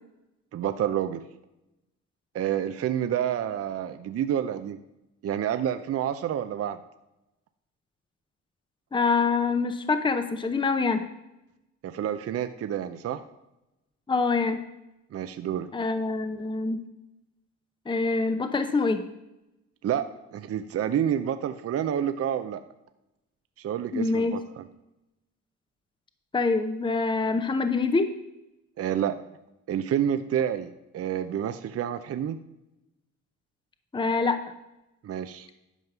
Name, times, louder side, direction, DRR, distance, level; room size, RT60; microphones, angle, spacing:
voice 1, 0.5-1.2 2.3-4.8 5.2-6.8 11.8-13.2 15.1-15.7 19.8-20.1 20.3-22.6 23.6-24.7 28.8-29.2 29.7-32.4 35.0-35.5, right 9 dB, 50° right, 10 dB, 0.6 m, -28 dB
voice 2, 8.9-11.0 14.1-14.6 15.7-16.8 17.9-19.0 23.9-24.4 26.3-28.1 33.9-34.4, left 4 dB, 15° left, 9 dB, 0.7 m, -25 dB
11.0 x 5.3 x 5.9 m, 0.92 s
cardioid pair, 90°, 30 cm